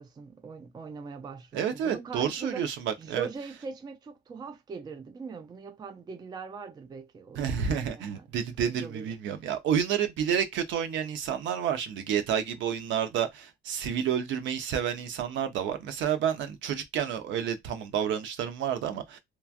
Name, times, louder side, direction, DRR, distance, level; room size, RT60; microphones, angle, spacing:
voice 1, 0.0-2.7 3.0-8.3 8.6-9.1, right 5 dB, 20° right, 0.4 m, -41 dB
voice 2, 1.5-3.3 7.3-19.2, right 8 dB, 65° right, 0.8 m, -30 dB
3.1 x 2.2 x 2.4 m
cardioid pair, 135°, 20 cm